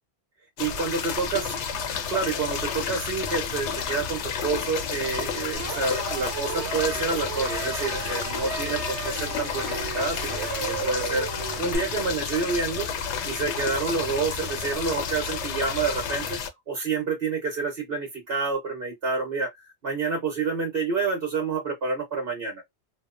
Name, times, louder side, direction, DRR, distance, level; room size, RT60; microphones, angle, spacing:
sound 1, 0.6-16.5, left 6 dB, 85° left, 0.9 m, -31 dB
voice 1, 0.6-1.5 2.1-12.9 13.2-16.4 16.7-22.6, right 4 dB, 60° right, 1.1 m, -28 dB
sound 2, 5.5-11.8, right 7 dB, 85° right, 1.0 m, -35 dB
3.0 x 2.1 x 2.4 m
omnidirectional pair, 1.1 m